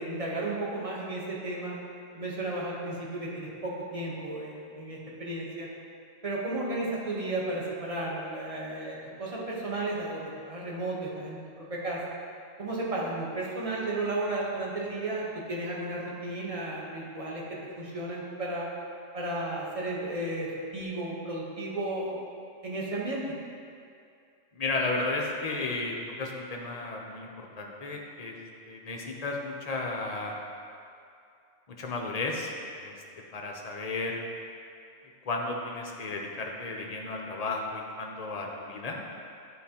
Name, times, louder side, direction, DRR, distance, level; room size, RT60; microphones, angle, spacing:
voice 1, 0.0-1.8 2.1-5.7 6.2-12.0 12.6-18.7 19.1-22.2 22.6-23.3, right 2 dB, 30° right, -4 dB, 0.9 m, -33 dB
voice 2, 24.5-28.3 28.7-30.4 31.7-32.9 33.3-34.2 35.3-39.0, left 3 dB, 50° left, 0 dB, 0.4 m, -33 dB
9.3 x 4.0 x 2.8 m, 2.4 s
omnidirectional pair, 1.4 m